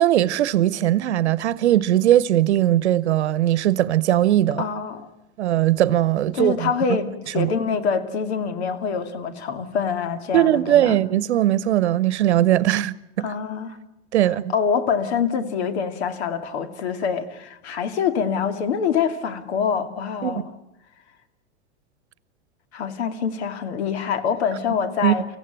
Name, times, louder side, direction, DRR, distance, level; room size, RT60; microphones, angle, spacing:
voice 1, 0.0-4.6 5.4-6.7 7.4-7.5 10.3-13.3 14.1-14.5 20.2-20.4 25.0-25.1, right 12 dB, 85° right, 0.9 m, -19 dB
voice 2, 4.6-5.1 6.3-11.0 13.2-13.8 14.5-20.4 22.7-25.3, left 6 dB, 75° left, 2.5 m, -25 dB
25.0 x 16.0 x 9.1 m
hypercardioid pair, 110°, 33 cm